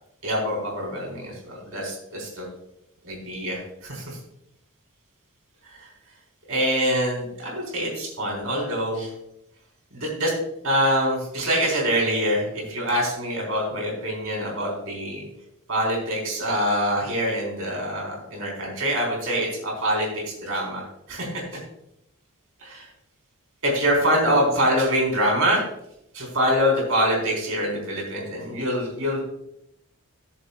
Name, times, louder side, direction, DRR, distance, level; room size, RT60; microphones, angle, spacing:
voice 1, 0.2-2.5 3.0-4.2 5.6-5.9 6.5-9.1 9.9-10.3 10.6-15.3 15.7-21.6 22.6-22.8 23.6-25.6 26.1-29.2, equal, 65° right, -2 dB, 3.8 m, -25 dB
17.5 x 7.0 x 2.3 m, 0.79 s
head